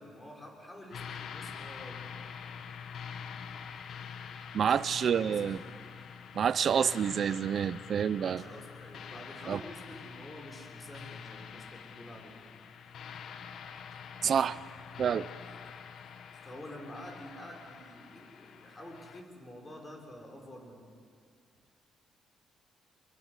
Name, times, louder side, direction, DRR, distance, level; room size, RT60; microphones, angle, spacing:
voice 1, 0.0-2.1 4.6-5.8 8.2-12.4 16.4-20.9, left 1 dB, 20° left, 1 dB, 5.9 m, -48 dB
sound 1, 0.9-19.2, left 7 dB, 70° left, 1.3 m, -46 dB
voice 2, 4.5-5.6 6.3-8.4 9.5-9.6 14.2-14.6 15.0-15.3, right 8 dB, 55° right, 17 dB, 0.7 m, -28 dB
23.5 x 23.0 x 8.3 m, 2.1 s
cardioid pair, 90°, 0 cm